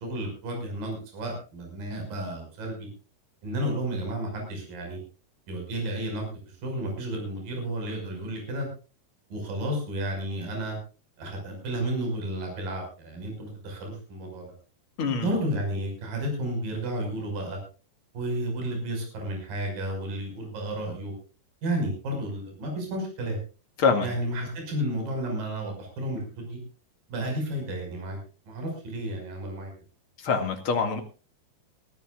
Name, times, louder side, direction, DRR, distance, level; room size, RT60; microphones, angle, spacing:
voice 1, 0.0-2.9 3.4-5.0 5.5-8.7 9.3-10.8 11.2-14.5 15.2-17.6 18.1-21.1 21.6-23.4 24.0-26.6 27.1-28.2 28.5-29.7, right 1 dB, 55° right, 2 dB, 7.5 m, -32 dB
voice 2, 15.0-15.3 23.8-24.1 30.2-31.0, left 5 dB, 40° left, 6 dB, 2.3 m, -24 dB
22.5 x 14.5 x 2.5 m, 0.35 s
omnidirectional pair, 4.9 m